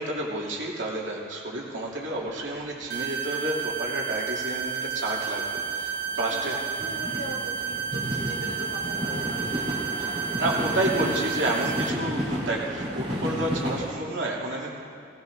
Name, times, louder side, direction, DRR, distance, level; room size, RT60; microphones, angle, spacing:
voice 1, 0.0-6.5 10.0-14.7, right 1 dB, 70° right, -4 dB, 2.6 m, -30 dB
sound 1, 2.0-2.1 2.2-3.1 3.4-13.9, equal, 35° right, 3.3 m, -33 dB
sound 2, 2.9-11.9, right 7 dB, 50° right, 0.8 m, -31 dB
voice 2, 6.3-9.7, equal, 65° left, -3 dB, 2.8 m, -41 dB
18.5 x 18.5 x 2.6 m, 2.5 s
head